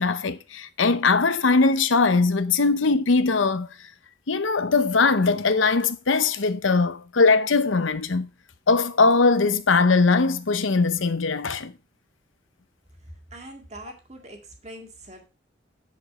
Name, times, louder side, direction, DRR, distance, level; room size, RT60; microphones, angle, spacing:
voice 1, 0.0-3.7 4.3-8.3 8.7-11.7, left 4 dB, 90° left, 0.8 m, -21 dB
voice 2, 13.1-15.2, right 1 dB, 35° right, 2.0 m, -43 dB
10.5 x 5.2 x 4.3 m
head